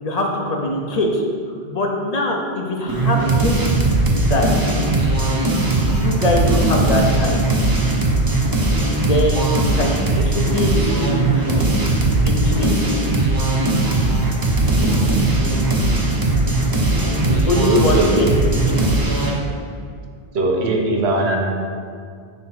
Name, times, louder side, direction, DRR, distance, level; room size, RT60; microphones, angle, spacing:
voice 1, 0.0-1.2 1.7-3.8 4.1-4.7 5.9-7.5 9.1-10.0 10.2-11.7 12.2-12.8 17.2-18.3 18.5-18.9, left 2 dB, 45° left, 1 dB, 0.6 m, -22 dB
sound 1, 2.9-19.4, right 2 dB, 25° right, 0.5 m, -18 dB
voice 2, 17.3-18.3 20.3-21.4, right 2 dB, 85° right, 1 dB, 1.0 m, -20 dB
4.2 x 4.2 x 5.7 m, 2.2 s
omnidirectional pair, 1.1 m